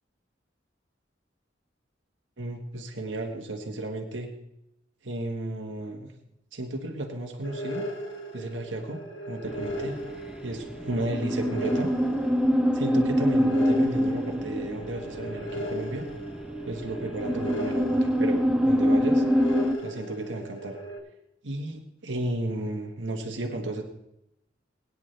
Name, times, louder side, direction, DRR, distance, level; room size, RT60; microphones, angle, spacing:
voice 1, 2.4-4.3 5.0-6.1 6.5-7.8 8.3-9.0 9.3-10.0 10.4-11.9 12.7-16.1 16.6-19.2 19.8-20.8 21.4-23.8, right 1 dB, 75° right, 2 dB, 1.5 m, -33 dB
sound 1, 7.4-21.0, equal, 85° left, 2.2 m, -37 dB
sound 2, 9.5-19.7, equal, 5° right, 0.6 m, -25 dB
21.0 x 9.6 x 3.3 m, 0.84 s
head